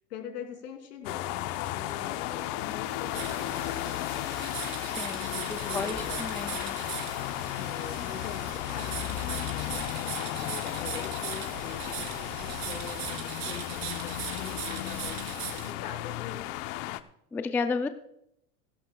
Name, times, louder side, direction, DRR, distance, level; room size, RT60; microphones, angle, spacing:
voice 1, 0.1-4.0 5.2-6.3 7.6-16.4, left 7 dB, 80° left, 5 dB, 2.9 m, -43 dB
sound 1, 1.0-17.0, left 15 dB, 50° left, 0.8 m, -34 dB
sound 2, 3.1-15.7, right 9 dB, 55° right, 3.3 m, -39 dB
voice 2, 4.8-6.8 17.3-17.9, left 4 dB, 5° left, 9 dB, 0.3 m, -33 dB
20.5 x 11.5 x 2.3 m, 0.76 s
hypercardioid pair, 110°, 46 cm